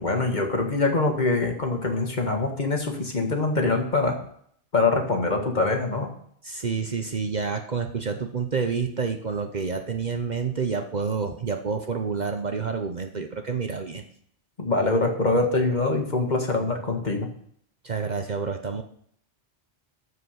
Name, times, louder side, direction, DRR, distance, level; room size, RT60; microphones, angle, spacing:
voice 1, 0.0-4.2 4.7-6.1 14.6-17.3, left 3 dB, 40° left, 3 dB, 1.7 m, -24 dB
voice 2, 6.4-14.0 17.8-18.8, right 5 dB, 45° right, 5 dB, 0.9 m, -28 dB
13.0 x 4.9 x 6.5 m, 0.64 s
omnidirectional pair, 1.1 m